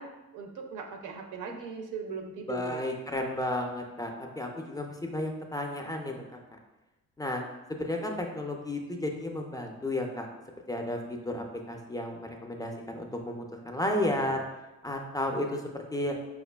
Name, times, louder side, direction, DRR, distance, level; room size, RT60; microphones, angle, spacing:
voice 1, 0.0-2.8, right 5 dB, 85° right, 3 dB, 0.6 m, -39 dB
voice 2, 2.5-6.4 7.2-7.4 7.8-10.3 10.7-14.4 14.8-16.1, left 1 dB, 15° left, 2 dB, 0.3 m, -33 dB
4.9 x 2.4 x 2.2 m, 1.1 s
cardioid pair, 90°, 30 cm